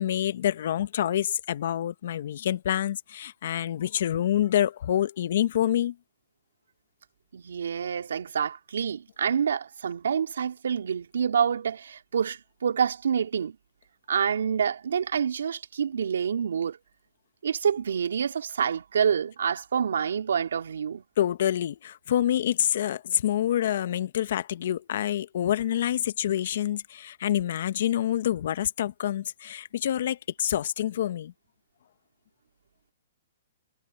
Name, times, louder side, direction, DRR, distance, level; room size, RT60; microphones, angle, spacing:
voice 1, 0.0-5.9 21.2-31.3, left 11 dB, 60° left, 1.3 m, -27 dB
voice 2, 7.3-13.6 14.1-16.8 17.4-21.0, right 7 dB, 80° right, 3.5 m, -27 dB
hypercardioid pair, 145°, 0 cm